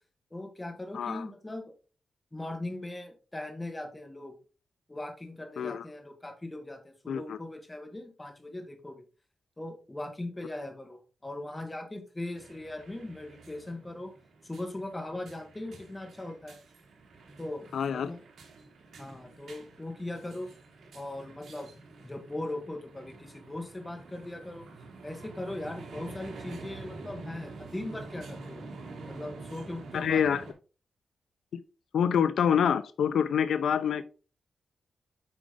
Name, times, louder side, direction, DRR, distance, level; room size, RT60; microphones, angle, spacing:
voice 1, 0.3-1.7 2.3-4.4 4.9-9.0 9.6-14.1 14.4-16.6 17.4-18.2 19.0-20.5 20.9-21.7 22.0-24.6 25.0-28.7 29.0-30.2, left 1 dB, 15° left, 4 dB, 1.8 m, -39 dB
voice 2, 0.9-1.3 5.6-5.8 7.1-7.4 17.7-18.1 29.9-30.4 31.5-31.6 31.9-34.0, left 8 dB, 80° left, 13 dB, 0.5 m, -26 dB
sound 1, 12.3-30.5, right 3 dB, 85° right, 2.4 m, -47 dB
8.7 x 5.1 x 3.7 m, 0.35 s
wide cardioid pair, 130°, 0 cm